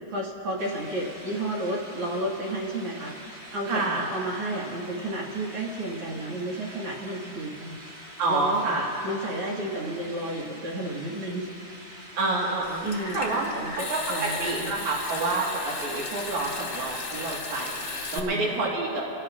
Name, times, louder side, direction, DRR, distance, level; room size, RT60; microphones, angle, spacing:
voice 1, 0.1-3.1 3.5-7.8 8.3-8.6 9.0-11.5 12.8-13.2 13.5-13.7 14.1-14.7 18.1-18.5, right 1 dB, 55° right, -4 dB, 2.4 m, -32 dB
sound 1, 0.6-17.4, equal, 20° right, 2.4 m, -46 dB
voice 2, 3.7-4.0 8.2-8.9 12.2-12.8 13.1-19.0, right 3 dB, 75° right, -4 dB, 3.0 m, -28 dB
Water tap faucet / Sink (filling or washing) / Trickle dribble, 12.6-18.2, left 3 dB, 35° left, 1.1 m, -35 dB
26.5 x 17.5 x 2.4 m, 2.6 s
omnidirectional pair, 3.4 m